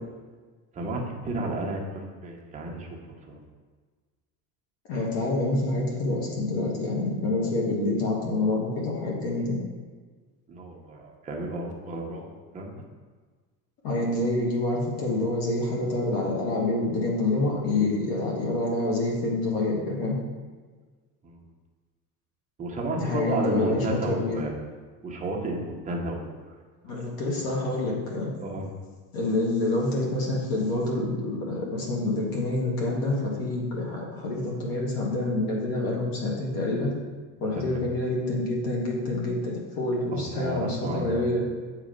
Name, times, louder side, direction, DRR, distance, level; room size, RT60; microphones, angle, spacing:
voice 1, 0.7-2.9 3.3-3.4 10.5-12.8 21.2-21.4 22.6-24.5 25.0-26.6 26.9-27.4 28.4-28.6 37.6-37.8 40.1-41.2, right 2 dB, 20° right, -1 dB, 0.7 m, -32 dB
voice 2, 4.9-9.6 13.8-20.2 23.0-24.4 26.8-28.3 29.1-36.9 37.4-41.4, left 2 dB, 65° left, -3 dB, 1.3 m, -27 dB
7.7 x 3.1 x 5.0 m, 1.4 s
cardioid pair, 170°, 38 cm